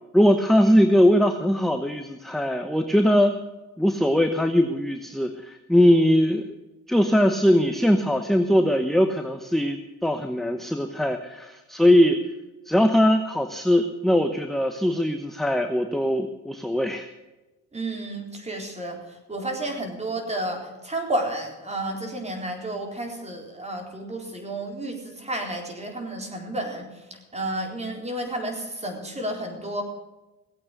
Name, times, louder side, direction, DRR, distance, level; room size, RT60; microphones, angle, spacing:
voice 1, 0.1-3.4 3.8-6.5 6.9-12.2 12.7-17.1, equal, ahead, 6 dB, 1.0 m, -21 dB
voice 2, 17.7-19.0 19.3-29.8, right 1 dB, 20° right, 2 dB, 4.0 m, -31 dB
17.5 x 8.6 x 6.7 m, 1.1 s
cardioid pair, 90°, 30 cm